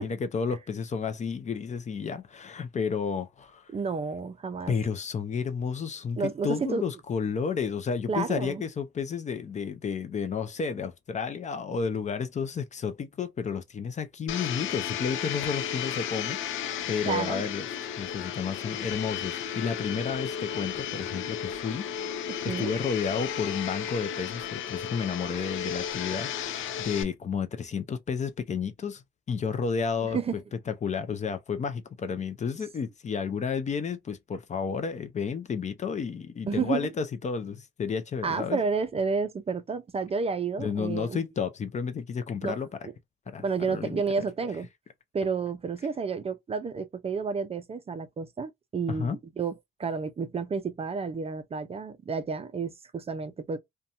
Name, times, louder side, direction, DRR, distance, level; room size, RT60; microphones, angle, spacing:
voice 1, 0.0-3.7 4.7-16.4 16.9-17.7 18.0-21.8 22.6-30.2 30.7-38.6 40.6-42.9 43.3-44.0 48.9-49.2, left 6 dB, 35° left, 0.5 m, -31 dB
voice 2, 3.7-4.7 6.2-6.8 8.1-8.6 17.1-17.5 22.3-22.7 30.0-30.4 36.5-36.9 38.2-41.2 42.4-42.5 42.8-42.9 43.4-44.7 45.1-53.6, right 5 dB, 30° right, 0.4 m, -31 dB
Domestic sounds home sounds, 14.3-27.0, left 9 dB, 85° left, 0.5 m, -34 dB
2.5 x 2.2 x 2.8 m
cardioid pair, 90°, 20 cm